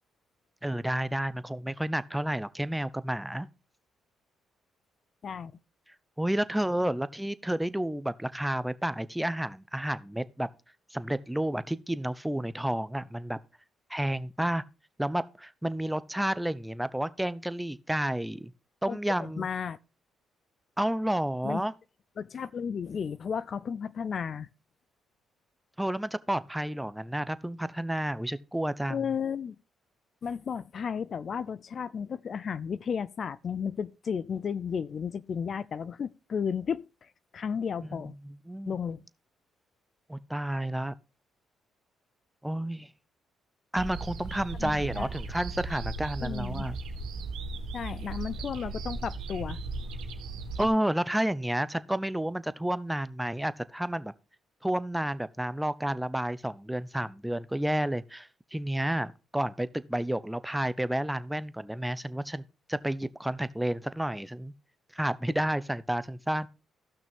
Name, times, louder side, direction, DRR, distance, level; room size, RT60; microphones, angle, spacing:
voice 1, 0.6-3.5 6.2-10.5 10.9-13.4 13.9-14.6 15.0-18.5 18.8-19.5 20.8-21.7 25.8-29.0 37.9-38.8 40.1-40.9 42.4-42.9 43.7-46.8 50.6-54.1 54.6-64.5 64.9-66.5, right 1 dB, 5° right, 0.7 m, -31 dB
voice 2, 18.9-19.8 21.4-21.6 22.2-24.5 28.9-29.5 30.2-38.1 38.7-39.0 44.6-45.1 46.2-46.7 47.7-49.6, left 7 dB, 50° left, 0.4 m, -33 dB
sound 1, 43.7-50.7, right 3 dB, 85° right, 1.7 m, -37 dB
14.5 x 6.1 x 3.5 m
cardioid pair, 90°, 0 cm